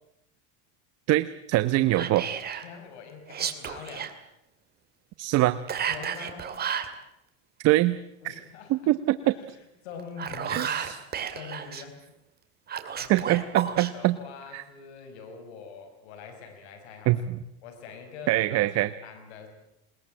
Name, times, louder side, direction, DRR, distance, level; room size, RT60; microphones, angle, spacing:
voice 1, 1.1-2.3 5.2-5.6 7.6-8.0 8.2-8.3 8.7-9.3 10.5-10.9 13.1-14.2 14.5-14.6 17.1-17.4 18.3-18.9, right 16 dB, 50° right, 13 dB, 1.0 m, -23 dB
Whispering, 1.9-2.7 3.3-4.1 5.7-6.9 10.0-11.8 12.7-13.9, right 8 dB, 30° right, 2.5 m, -32 dB
voice 2, 2.6-4.1 5.9-6.6 8.2-8.9 9.3-10.7 11.3-12.0 12.9-17.2 17.6-19.5, left 6 dB, 85° left, 5 dB, 5.4 m, -44 dB
21.5 x 20.5 x 8.8 m, 0.85 s
supercardioid pair, 125°, 32 cm